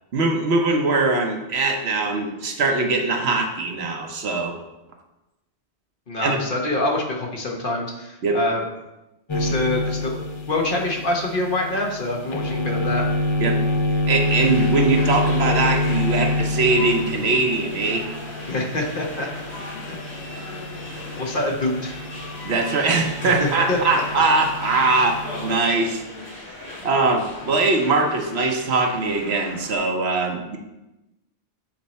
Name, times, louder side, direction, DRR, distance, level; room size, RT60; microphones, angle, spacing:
voice 1, 0.1-4.6 6.2-6.4 8.2-8.4 13.4-13.6 14.1-18.1 22.4-25.2 25.4-26.0 26.5-30.6, right 3 dB, 70° right, 3 dB, 1.1 m, -21 dB
voice 2, 6.1-8.6 9.3-10.2 10.5-13.1 18.4-19.3 19.9-20.0 21.2-22.0 23.2-24.2, left 2 dB, 55° left, 0 dB, 1.2 m, -25 dB
sound 1, 9.3-25.6, left 1 dB, 35° left, 0.5 m, -27 dB
sound 2, 14.1-29.8, left 2 dB, 80° left, 2.0 m, -37 dB
7.4 x 4.4 x 4.1 m, 0.98 s
omnidirectional pair, 1.1 m